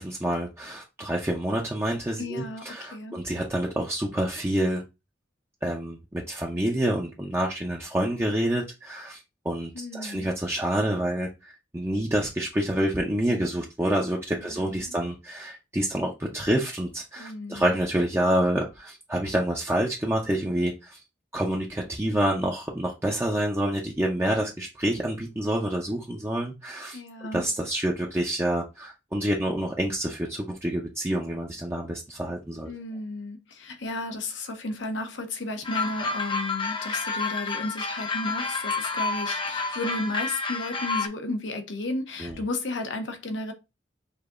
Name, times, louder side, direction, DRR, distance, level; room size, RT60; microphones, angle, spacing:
voice 1, 0.0-4.8 5.6-9.2 9.4-21.0 21.3-27.0 27.3-32.7 42.2-42.4, right 1 dB, 15° right, 0.6 m, -27 dB
voice 2, 2.2-3.2 9.7-10.3 14.3-15.0 17.2-17.7 26.9-27.4 32.7-43.5, left 2 dB, 80° left, 0.8 m, -33 dB
sound 1, 35.6-41.1, left 4 dB, 25° left, 0.5 m, -29 dB
6.6 x 2.8 x 2.5 m
head